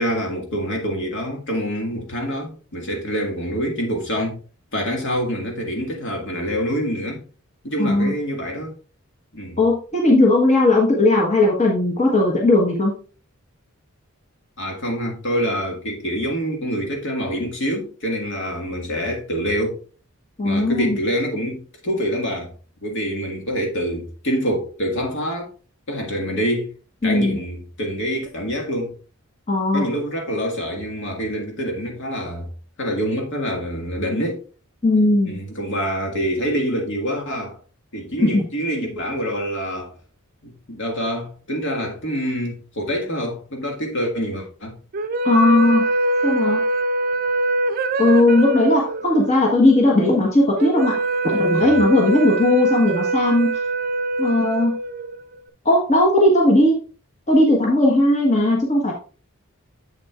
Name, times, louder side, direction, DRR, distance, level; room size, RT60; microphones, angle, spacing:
voice 1, 0.0-4.4 4.7-7.2 7.6-8.7 9.3-9.6 14.6-19.8 20.4-22.5 22.8-25.5 25.9-26.7 27.0-28.9 29.7-32.5 32.8-34.4 35.3-37.6 37.9-39.9 40.4-44.8 51.6-51.8, equal, 60° left, 1.9 m, -26 dB
voice 2, 7.8-8.1 9.6-12.9 20.4-21.0 27.0-27.4 29.5-29.9 34.8-35.3 38.2-38.4 45.2-45.9 46.2-46.6 48.0-50.9 51.2-53.5 54.2-54.7 55.6-56.8 57.3-58.9, left 1 dB, 30° left, 1.4 m, -17 dB
sound 1, 44.9-55.4, right 2 dB, 45° right, 0.6 m, -23 dB
7.6 x 7.3 x 2.4 m
head